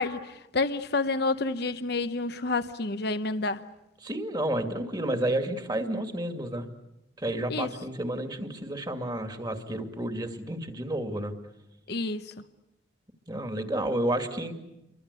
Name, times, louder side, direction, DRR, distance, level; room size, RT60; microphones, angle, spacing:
voice 1, 0.0-3.6 7.5-7.7 11.9-12.3, left 3 dB, 55° left, 10 dB, 0.9 m, -29 dB
voice 2, 4.0-6.7 7.2-11.3 13.3-14.5, right 1 dB, 20° right, 6 dB, 2.3 m, -31 dB
28.0 x 24.0 x 8.3 m, 0.89 s
head